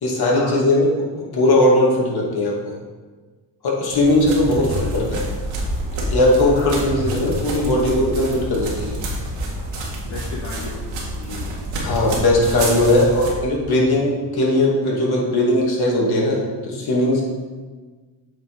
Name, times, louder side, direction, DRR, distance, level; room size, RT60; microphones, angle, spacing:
voice 1, 0.0-0.9 1.3-2.7 3.6-4.7 4.9-5.2 6.1-9.0 11.8-17.2, left 1 dB, 55° left, -3 dB, 2.5 m, -18 dB
sound 1, 3.9-13.3, right 1 dB, 80° right, 2.1 m, -28 dB
voice 2, 4.5-4.9 6.5-6.9 10.0-10.8 11.1-11.5, left 3 dB, 70° left, -5 dB, 1.7 m, -34 dB
8.3 x 5.5 x 4.8 m, 1.4 s
cardioid pair, 105°, 46 cm